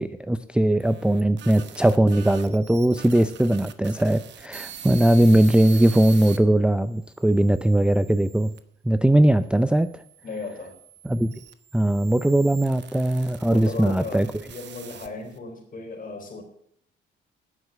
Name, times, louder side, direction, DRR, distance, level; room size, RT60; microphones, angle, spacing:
voice 1, 0.0-8.5 8.8-10.0 11.0-11.3 11.7-14.3, right 1 dB, 5° right, 11 dB, 0.5 m, -20 dB
sound 1, 0.6-6.4 7.0-8.6 9.4-15.4, right 9 dB, 65° right, 1.1 m, -44 dB
voice 2, 10.2-10.8 13.4-16.4, left 3 dB, 45° left, 3 dB, 3.8 m, -36 dB
9.6 x 7.2 x 8.9 m, 0.68 s
cardioid pair, 90°, 20 cm